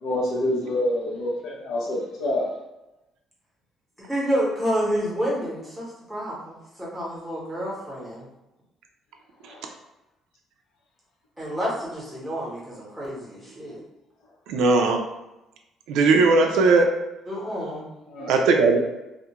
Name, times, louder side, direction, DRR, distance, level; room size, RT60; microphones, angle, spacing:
voice 1, 0.0-2.5 9.5-9.6 13.6-13.7 18.1-18.3, left 1 dB, 90° left, -4 dB, 0.7 m, -27 dB
voice 2, 4.0-8.3 11.4-13.8 17.3-17.8, equal, ahead, -6 dB, 0.8 m, -29 dB
voice 3, 14.5-15.0 15.9-16.9 18.3-18.8, right 3 dB, 90° right, 3 dB, 0.3 m, -18 dB
2.3 x 2.1 x 2.8 m, 0.96 s
cardioid pair, 165°, 0 cm